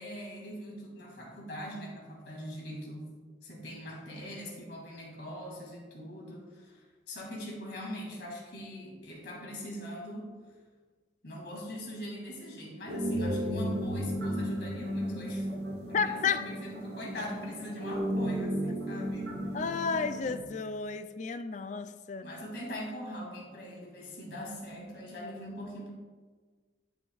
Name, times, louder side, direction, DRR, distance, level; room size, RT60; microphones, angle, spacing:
voice 1, 0.0-3.1 3.4-10.3 11.2-15.5 15.9-19.4 22.2-25.9, equal, 65° left, -2 dB, 2.4 m, -42 dB
sound 1, 12.9-20.4, equal, 65° right, 1.3 m, -34 dB
voice 2, 15.9-16.5 19.5-22.4, left 5 dB, 40° left, 11 dB, 0.4 m, -32 dB
11.0 x 7.0 x 2.4 m, 1.4 s
head